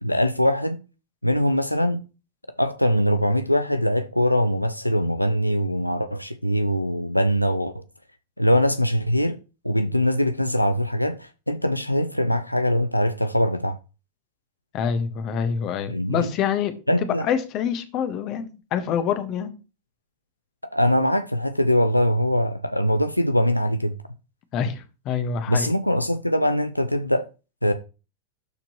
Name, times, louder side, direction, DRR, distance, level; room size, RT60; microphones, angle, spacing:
voice 1, 0.0-0.8 1.2-2.0 2.6-7.8 8.4-9.4 9.6-13.8 15.9-16.3 16.9-17.3 20.6-24.0 25.5-27.3 27.6-27.7, equal, 90° left, 0.4 m, -22 dB
voice 2, 14.7-16.7 17.0-19.5 24.5-25.7, left 7 dB, 35° left, 1.4 m, -26 dB
12.0 x 4.4 x 3.1 m
figure-of-eight pair, 90°, 0 cm